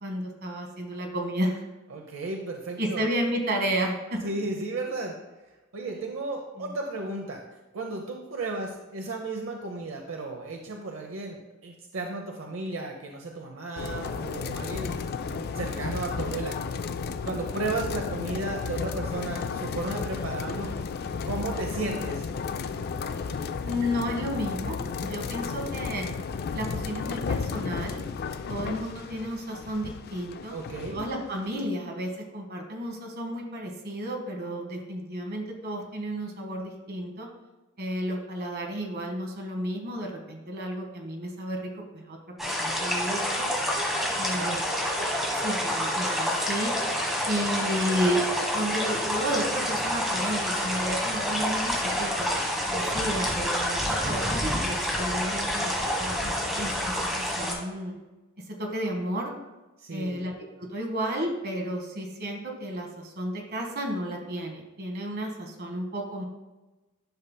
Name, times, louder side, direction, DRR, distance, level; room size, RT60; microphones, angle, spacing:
voice 1, 0.0-1.6 2.8-4.2 6.6-6.7 23.6-26.1 26.5-28.0 28.5-30.6 30.9-37.3 37.8-43.5 44.2-44.6 45.3-46.7 47.3-48.3 48.5-52.3 52.6-58.0 58.5-59.3 59.9-60.3 60.6-66.2, equal, 50° right, 1 dB, 1.3 m, -32 dB
voice 2, 1.9-3.1 4.2-5.1 5.7-7.4 7.7-15.0 15.2-16.6 17.2-20.7 21.3-22.2 30.5-31.0 44.3-44.6 59.8-60.2, right 2 dB, 75° right, 2 dB, 0.7 m, -34 dB
sound 1, 13.8-31.6, left 5 dB, 50° left, 0.3 m, -33 dB
sound 2, 42.4-57.5, equal, ahead, 1.3 m, -28 dB
10.5 x 5.5 x 2.2 m, 1.1 s
head